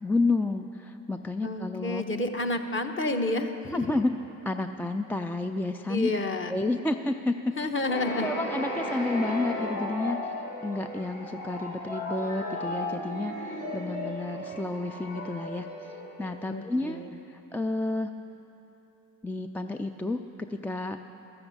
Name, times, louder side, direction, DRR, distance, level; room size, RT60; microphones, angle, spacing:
voice 1, 0.0-2.0 3.7-4.1 4.5-6.1 6.5-7.5 8.2-10.2 10.6-15.7 16.2-17.0 17.5-18.1 19.2-20.2 20.5-21.0, left 2 dB, 5° left, 7 dB, 0.3 m, -30 dB
voice 2, 1.4-3.8 5.9-6.6 7.6-8.3 16.4-17.1, left 2 dB, 30° left, 5 dB, 1.1 m, -30 dB
sound 1, 7.8-16.6, left 1 dB, 85° left, 3.1 m, -35 dB
13.5 x 7.1 x 7.9 m, 3.0 s
hypercardioid pair, 60°, 40 cm